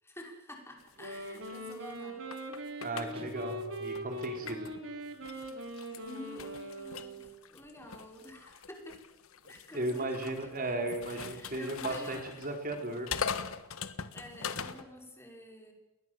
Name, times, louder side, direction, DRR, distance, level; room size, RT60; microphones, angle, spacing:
voice 1, 0.0-2.2 2.6-2.7 5.9-9.0 9.5-12.5 14.1-15.7, left 1 dB, 10° left, 2 dB, 5.7 m, -49 dB
sound 1, 0.8-4.8 5.2-14.8, left 6 dB, 70° left, 1.5 m, -42 dB
Wind instrument woodwind instrument, 0.9-7.4, right 1 dB, 65° right, 4.7 m, -41 dB
voice 2, 2.8-4.7 9.4-13.1, right 2 dB, 40° right, 4 dB, 3.7 m, -36 dB
sound 2, 3.1-4.8, right 2 dB, 25° right, 1.8 m, -50 dB
29.5 x 21.0 x 7.6 m, 1.0 s
head